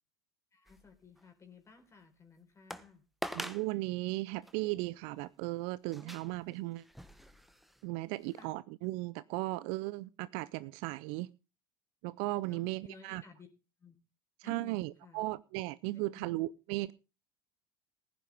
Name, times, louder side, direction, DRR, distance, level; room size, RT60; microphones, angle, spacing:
voice 1, 0.5-3.0 6.0-6.4 8.3-8.5 12.5-13.5 13.8-14.0 14.4-15.2 15.9-16.4, left 5 dB, 25° left, 4 dB, 4.1 m, -56 dB
sound 1, 0.7-1.2 1.8-1.9 2.7-2.9 3.2-3.7 4.4-4.6 5.9-7.8 8.3-8.4, equal, ahead, 1.3 m, -44 dB
voice 2, 3.3-6.9 7.8-11.3 12.0-13.2 14.4-16.9, right 20 dB, 55° right, 19 dB, 0.6 m, -36 dB
19.0 x 10.5 x 3.5 m, 0.31 s
figure-of-eight pair, 75°, 12 cm